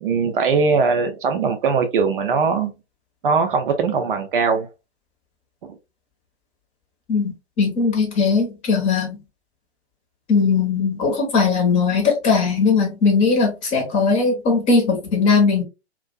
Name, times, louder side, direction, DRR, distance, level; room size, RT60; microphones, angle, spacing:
voice 1, 0.0-2.7 3.2-4.7 5.6-5.7, right 5 dB, 50° right, 0.5 m, -20 dB
voice 2, 7.1-9.2 10.3-15.6, left 4 dB, 20° left, 0.8 m, -19 dB
2.4 x 2.2 x 2.3 m
figure-of-eight pair, 115°, 35 cm